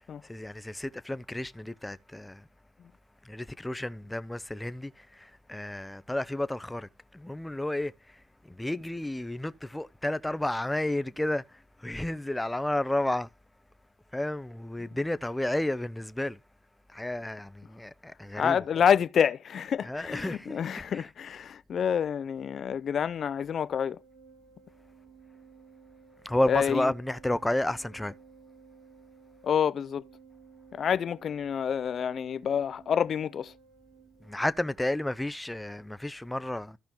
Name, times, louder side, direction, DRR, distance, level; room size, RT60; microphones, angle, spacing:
voice 1, 0.2-2.5 3.2-13.3 14.1-16.4 16.9-18.8 19.8-21.1 26.2-28.1 34.2-36.8, left 1 dB, 10° left, 0.6 m, -32 dB
voice 2, 18.4-24.0 26.4-26.9 29.4-30.0 30.7-33.5, left 8 dB, 55° left, 0.5 m, -28 dB
Organ, 23.9-34.7, right 6 dB, 65° right, 2.8 m, -55 dB
15.0 x 5.2 x 2.9 m
cardioid pair, 90°, 0 cm